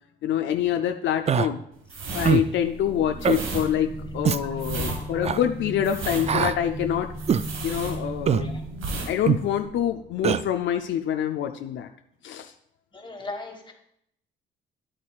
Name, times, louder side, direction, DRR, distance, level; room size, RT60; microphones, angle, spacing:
voice 1, 0.2-1.6 2.1-7.1 7.6-8.6 9.1-11.9 12.2-12.5, left 10 dB, 70° left, 5 dB, 0.5 m, -26 dB
Human voice, 1.3-1.5 2.2-2.5 3.2-3.4 4.2-4.4 5.2-5.4 6.3-6.6 7.3-7.5 8.3-8.5 9.3-9.4 10.2-10.4, right 8 dB, 35° right, 0.4 m, -22 dB
sound 1, 1.9-8.4 8.7-9.1 9.4-9.6, right 3 dB, 85° right, 1.6 m, -34 dB
sound 2, 2.4-10.6, right 1 dB, 50° right, 2.5 m, -37 dB
voice 2, 4.9-5.2 8.4-8.6 12.9-13.7, left 2 dB, 25° left, 3 dB, 1.6 m, -39 dB
10.0 x 8.6 x 2.4 m, 0.72 s
cardioid pair, 90°, 20 cm